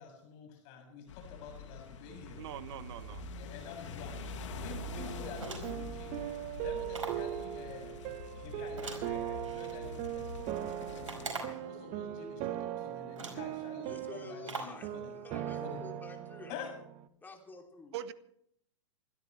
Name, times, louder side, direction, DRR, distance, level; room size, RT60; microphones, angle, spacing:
voice 1, 0.0-2.4 3.2-4.2 4.6-6.2 6.6-8.0 8.4-15.1 15.6-15.8 16.5-16.7, left 6 dB, 45° left, 2 dB, 7.2 m, -48 dB
sound 1, 1.1-11.3, left 3 dB, 65° left, 2.5 m, -45 dB
voice 2, 2.4-3.2 17.9-18.1, right 11 dB, 55° right, 14 dB, 1.1 m, -42 dB
sound 2, 5.0-17.1, right 12 dB, 35° right, 1.2 m, -40 dB
sound 3, 5.3-5.9 6.9-7.3 8.8-9.8 11.1-11.7 12.6-12.7 13.1-13.5 14.5-14.8, right 4 dB, 80° right, 4.8 m, -42 dB
voice 3, 13.8-16.6 17.2-18.0, left 2 dB, 10° left, 2 dB, 3.0 m, -49 dB
28.0 x 13.0 x 3.3 m, 0.69 s
hypercardioid pair, 115°, 16 cm